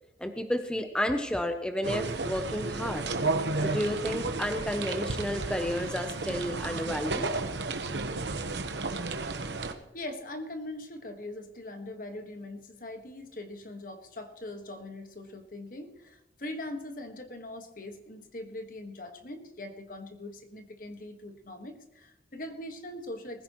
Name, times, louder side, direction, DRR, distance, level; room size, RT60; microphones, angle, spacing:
voice 1, 0.2-3.1 3.6-7.3, equal, 5° left, 7 dB, 0.6 m, -31 dB
sound 1, 1.8-9.7, right 3 dB, 80° right, 1.1 m, -32 dB
voice 2, 9.9-23.4, left 1 dB, 50° left, 6 dB, 1.5 m, -41 dB
20.5 x 15.0 x 3.1 m, 0.90 s
head